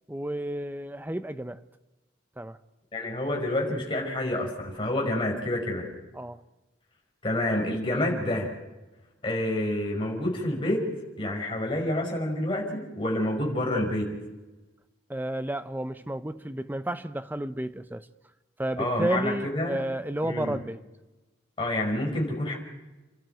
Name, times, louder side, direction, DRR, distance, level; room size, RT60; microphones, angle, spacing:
voice 1, 0.1-1.6 2.4-2.6 6.2-6.4 15.1-18.1 18.6-20.8, right 1 dB, 10° right, 0.7 m, -31 dB
voice 2, 2.9-5.9 7.2-8.5 9.2-10.8 11.2-14.1 18.8-19.8 20.2-20.6 21.6-22.6, left 1 dB, 25° left, 5.3 m, -28 dB
30.0 x 12.5 x 9.1 m
head